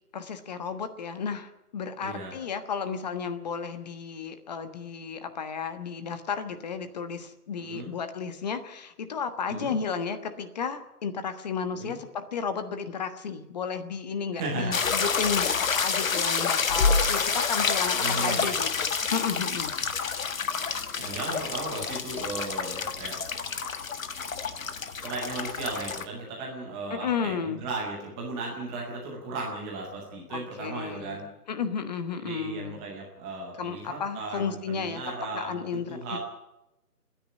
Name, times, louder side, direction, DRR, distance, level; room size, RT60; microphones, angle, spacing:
voice 1, 0.1-19.7 26.9-27.6 30.3-31.2 31.5-32.8 33.6-35.0 35.3-36.2, left 6 dB, 25° left, 10 dB, 1.3 m, -33 dB
voice 2, 2.0-2.3 7.7-7.9 9.5-9.7 11.7-12.0 14.3-14.7 18.0-18.6 21.0-23.2 25.0-31.3 32.1-36.2, right 2 dB, 5° right, -2 dB, 0.7 m, -36 dB
sound 1, 14.7-26.1, left 5 dB, 60° left, 1.6 m, -28 dB
29.0 x 10.0 x 9.7 m, 0.91 s
figure-of-eight pair, 155°, 46 cm